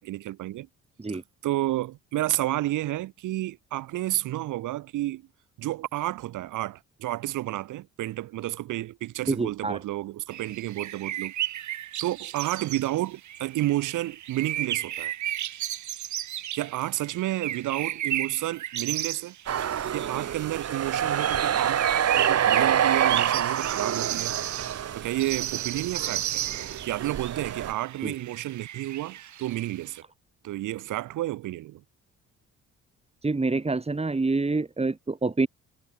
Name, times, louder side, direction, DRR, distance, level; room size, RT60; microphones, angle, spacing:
voice 1, 0.0-0.7 1.4-5.2 5.6-11.3 12.0-15.1 16.5-19.3 19.9-21.8 22.1-24.3 24.9-26.4 26.8-30.0 30.4-31.8, right 15 dB, 90° right, 5.2 m, -31 dB
voice 2, 9.3-9.8 28.0-28.1 33.2-35.5, right 3 dB, 20° right, 3.3 m, -26 dB
sound 1, 10.3-30.0, right 12 dB, 70° right, 2.3 m, -34 dB
sound 2, 19.5-27.7, right 9 dB, 55° right, 2.0 m, -27 dB
cardioid pair, 90°, 30 cm